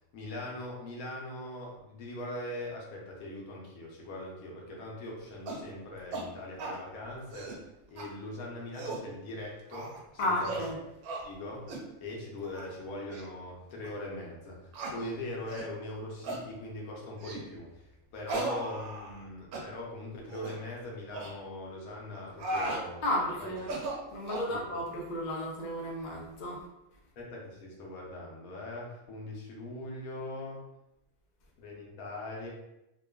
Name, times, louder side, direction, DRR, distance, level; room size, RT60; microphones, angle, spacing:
voice 1, 0.1-10.6 11.2-23.5 24.5-24.6 27.2-30.6 31.6-32.5, left 1 dB, 80° left, -2 dB, 1.1 m, -41 dB
sound 1, 5.5-5.7 6.1-6.3 6.6-6.8 7.2-7.6 8.0-8.1 8.6-9.1 9.7-10.0 10.4-10.7 11.0-11.2 11.7-11.9 12.4-12.7 13.1-13.2 13.8-13.9 14.7-15.0 15.5-15.7 16.2-16.4 17.2-17.5 18.3-19.2 19.5-19.7 20.3-20.6 21.1-21.3 22.1-22.8 23.6-24.5, right 2 dB, 85° right, 1.0 m, -37 dB
voice 2, 10.2-10.8 23.0-23.7 24.1-26.7, left 1 dB, 60° left, -2 dB, 0.4 m, -33 dB
2.8 x 2.3 x 2.2 m, 0.89 s
omnidirectional pair, 1.5 m